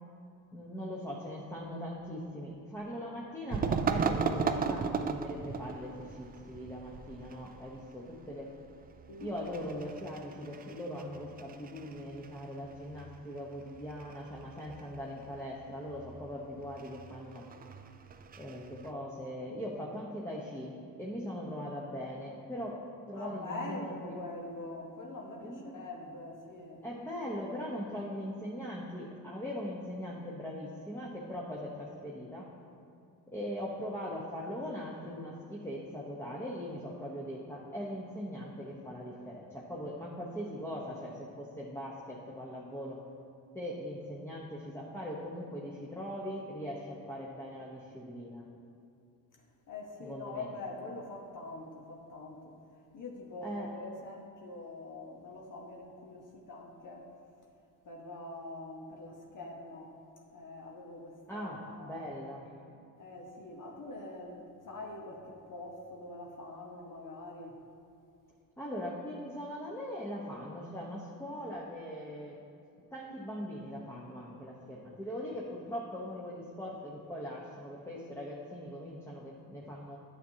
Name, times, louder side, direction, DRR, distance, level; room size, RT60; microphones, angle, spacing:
voice 1, 0.5-8.5 9.2-17.5 18.4-20.7 21.0-22.8 23.1-24.0 25.4-25.8 26.8-32.5 33.3-43.0 43.5-48.5 50.0-50.5 53.4-53.7 61.3-62.5 68.6-72.4 72.9-80.0, equal, 5° left, -4 dB, 1.0 m, -40 dB
sound 1, 3.5-18.9, right 5 dB, 25° right, 0.4 m, -37 dB
voice 2, 9.1-9.6 23.1-26.8 49.7-52.5 52.9-57.1 57.8-59.9 60.2-62.0 63.0-67.6, left 2 dB, 45° left, -1 dB, 1.1 m, -44 dB
9.1 x 7.0 x 2.8 m, 2.5 s
supercardioid pair, 70°, 41 cm